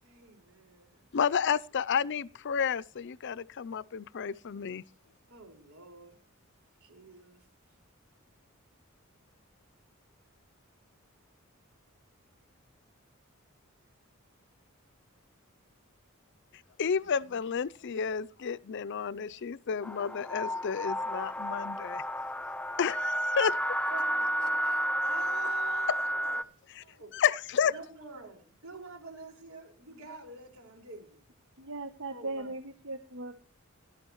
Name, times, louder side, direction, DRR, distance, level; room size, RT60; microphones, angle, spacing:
voice 1, 0.0-1.1 5.3-6.2 6.8-7.5 17.0-17.4 23.9-27.1 27.7-31.2 32.1-32.5, right 3 dB, 85° right, 5.1 m, -48 dB
voice 2, 1.1-4.8 16.8-22.0 22.8-23.6 27.1-27.7, left 7 dB, 60° left, 0.5 m, -31 dB
sound 1, 19.8-26.4, equal, 5° left, 0.5 m, -31 dB
voice 3, 31.6-33.6, right 2 dB, 65° right, 1.0 m, -39 dB
17.5 x 12.0 x 3.0 m
head